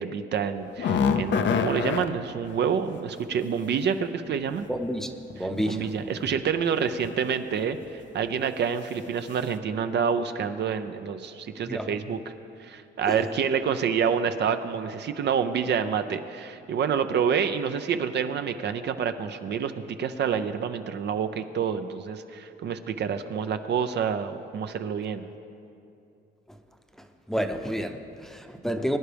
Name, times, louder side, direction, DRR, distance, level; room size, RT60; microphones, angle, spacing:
voice 1, 0.0-4.7 5.4-12.2 12.6-25.3, right 7 dB, 60° right, 9 dB, 0.6 m, -28 dB
sound 1, 0.6-2.1 4.3-4.4 5.3-5.7 6.1-6.3 7.0-7.3 7.7-7.9 8.3-8.4, left 6 dB, 65° left, 0.7 m, -26 dB
voice 2, 4.7-5.8 11.7-11.9 13.1-13.2 27.3-29.0, equal, ahead, 5 dB, 0.7 m, -29 dB
21.0 x 10.0 x 3.4 m, 2.6 s
cardioid pair, 90°, 20 cm